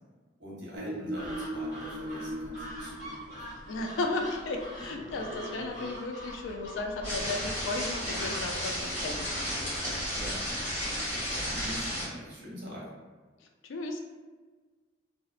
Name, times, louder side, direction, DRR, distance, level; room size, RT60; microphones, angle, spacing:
voice 1, 0.4-3.6 4.8-5.3 10.1-10.5 11.3-12.9, equal, 65° right, -5 dB, 0.8 m, -43 dB
sound 1, 0.8-3.7 4.7-5.9, equal, 90° right, 0.4 m, -39 dB
sound 2, 1.2-11.9, equal, 55° left, 1.4 m, -45 dB
voice 2, 3.7-9.3 13.6-14.0, left 2 dB, 85° left, 2 dB, 0.4 m, -34 dB
sound 3, 7.0-12.1, equal, 10° left, 0.9 m, -33 dB
2.6 x 2.0 x 2.4 m, 1.4 s
head